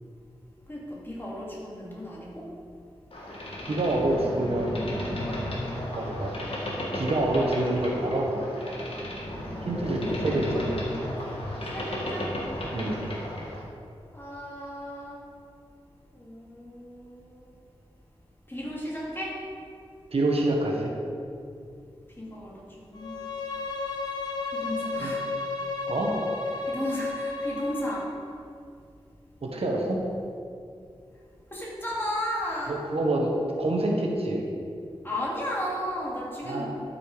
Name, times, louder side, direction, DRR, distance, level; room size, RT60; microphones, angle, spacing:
voice 1, 0.7-2.5 10.2-10.8 11.6-12.3 14.1-15.2 16.1-17.5 18.5-19.4 22.2-23.2 24.5-25.2 26.7-28.1 31.5-32.8 35.0-36.7, left 1 dB, 20° left, -5 dB, 2.4 m, -34 dB
Boat Water vehicle, 3.1-13.6, left 1 dB, 60° left, 2.0 m, -34 dB
voice 2, 3.7-4.8 5.9-6.3 6.9-8.7 9.6-10.6 12.7-13.0 20.1-20.9 25.0-25.1 25.9-26.1 29.4-30.0 32.7-33.3 33.6-34.5 36.4-36.7, right 1 dB, 70° right, -1 dB, 1.4 m, -27 dB
Bowed string instrument, 22.9-28.1, left 3 dB, 40° left, 1.3 m, -32 dB
11.5 x 6.0 x 5.0 m, 2.4 s
wide cardioid pair, 105°, 10 cm